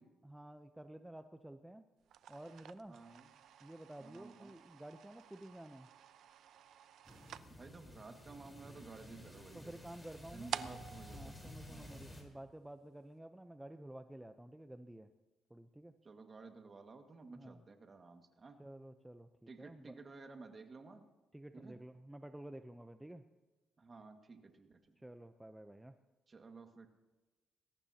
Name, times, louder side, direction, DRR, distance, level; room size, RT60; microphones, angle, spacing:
voice 1, 0.2-1.8 2.3-3.0 3.6-5.9 9.5-10.5 11.1-15.1 15.5-15.9 17.4-17.6 18.6-19.9 21.3-23.2 25.0-25.9, right 1 dB, 10° right, 7 dB, 0.7 m, -52 dB
sound 1, 2.0-12.4, right 9 dB, 75° right, 0.7 m, -51 dB
voice 2, 2.9-3.3 4.0-4.5 7.5-9.9 10.3-12.1 16.0-18.6 19.5-21.1 21.5-21.8 23.8-25.0 26.3-26.9, right 3 dB, 35° right, 5 dB, 1.9 m, -54 dB
sound 2, 7.0-12.2, left 1 dB, 15° left, 4.3 m, -53 dB
21.0 x 17.5 x 2.9 m, 1.2 s
cardioid pair, 90°, 0 cm